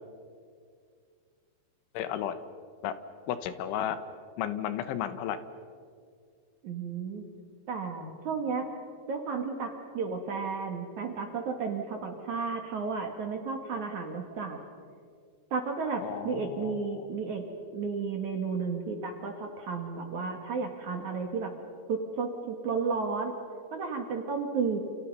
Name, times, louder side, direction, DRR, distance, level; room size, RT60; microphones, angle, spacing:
voice 1, 2.0-2.4 2.8-2.9 3.3-4.0 4.4-5.4 16.0-16.9, left 10 dB, 90° left, 11 dB, 3.6 m, -33 dB
voice 2, 6.6-7.2 7.7-8.7 9.1-14.6 15.5-17.4 17.7-21.5 21.9-23.3 23.7-24.8, right 5 dB, 50° right, 4 dB, 2.6 m, -33 dB
29.0 x 29.0 x 5.5 m, 2.2 s
omnidirectional pair, 5.3 m